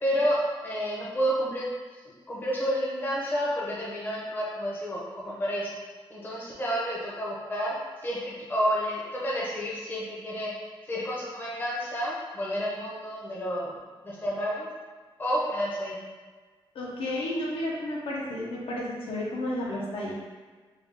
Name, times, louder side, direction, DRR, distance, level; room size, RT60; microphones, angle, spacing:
voice 1, 0.0-0.4 0.6-1.7 2.3-5.7 6.1-7.7 8.0-10.5 10.9-13.7 14.0-14.7 15.2-16.0, equal, 20° left, -6 dB, 0.7 m, -30 dB
voice 2, 16.7-20.2, left 1 dB, 75° left, -4 dB, 0.8 m, -32 dB
3.3 x 2.3 x 3.6 m, 1.4 s
wide cardioid pair, 165°, 9 cm